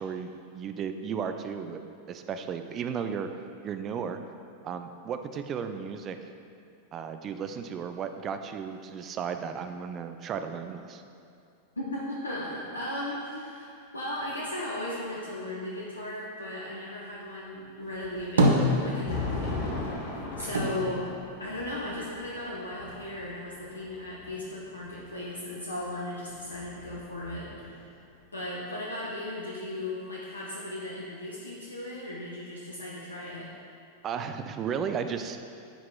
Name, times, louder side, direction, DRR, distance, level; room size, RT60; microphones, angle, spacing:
voice 1, 0.0-1.8 2.1-3.3 3.6-4.2 4.6-6.3 6.9-11.0 34.0-35.5, right 7 dB, 30° right, 8 dB, 0.3 m, -34 dB
voice 2, 11.8-21.0 21.4-28.0 28.3-33.5, left 1 dB, 80° left, -5 dB, 0.6 m, -37 dB
Thunder, 17.8-25.0 26.1-27.8, left 3 dB, 50° left, 1.1 m, -38 dB
sound 1, 17.9-19.4 19.7-22.1 22.5-23.4, right 1 dB, 65° right, 0.6 m, -27 dB
8.8 x 4.7 x 2.3 m, 2.5 s
figure-of-eight pair, 90°, 0 cm